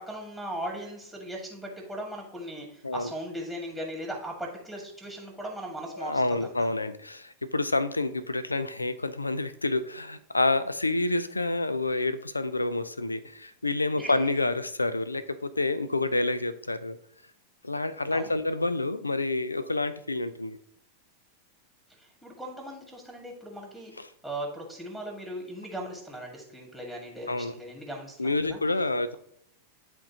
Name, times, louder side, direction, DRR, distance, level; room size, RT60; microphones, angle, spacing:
voice 1, 0.0-6.7 14.0-14.3 18.1-18.3 22.0-23.9 24.2-28.6, right 1 dB, 5° left, -1 dB, 1.8 m, -38 dB
voice 2, 5.9-17.0 17.6-20.6 24.0-24.1 27.3-27.5 28.2-29.1, left 2 dB, 80° left, 14 dB, 0.4 m, -28 dB
10.5 x 3.6 x 2.8 m, 0.70 s
figure-of-eight pair, 90°, 0 cm